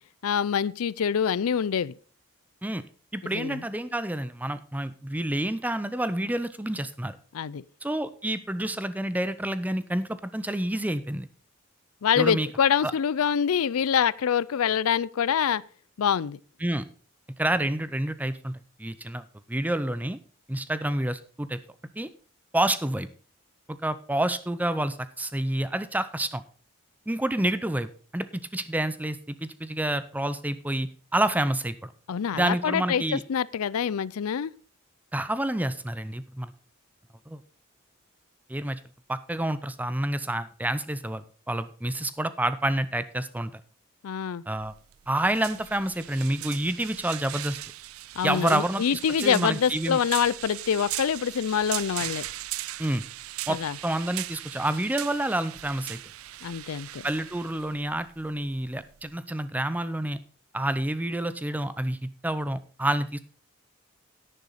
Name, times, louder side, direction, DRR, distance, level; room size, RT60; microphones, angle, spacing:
voice 1, 0.2-1.9 3.2-3.6 7.3-7.6 12.0-15.6 16.0-16.4 32.1-34.5 44.0-44.4 48.2-52.2 53.5-53.8 56.4-57.1, left 7 dB, 85° left, 0.4 m, -25 dB
voice 2, 3.1-7.2 7.8-11.3 12.2-12.5 12.8-12.9 16.6-16.8 17.4-20.2 20.5-21.6 22.0-22.1 22.5-23.1 23.7-26.4 27.1-31.9 32.3-33.2 35.1-36.5 37.3-37.4 38.5-38.8 39.1-43.6 44.5-44.7 45.1-47.6 48.2-50.0 52.8-53.0 53.5-56.0 57.0-60.2 60.5-63.2, right 1 dB, 5° right, 0.5 m, -28 dB
sound 1, 44.5-59.1, right 15 dB, 80° right, 0.4 m, -39 dB
10.5 x 10.0 x 4.1 m
head